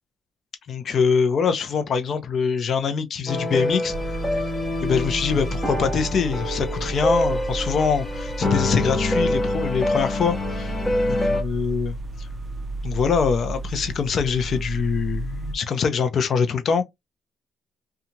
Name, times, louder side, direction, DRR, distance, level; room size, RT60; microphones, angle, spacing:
voice 1, 0.7-4.2 4.8-10.7 11.3-12.3 12.8-16.8, left 6 dB, 55° left, 0.6 m, -24 dB
sound 1, 3.3-11.4, left 1 dB, 20° left, 0.8 m, -26 dB
sound 2, 3.9-15.6, right 2 dB, 30° right, 0.4 m, -32 dB
2.8 x 2.4 x 2.7 m
cardioid pair, 90°, 0 cm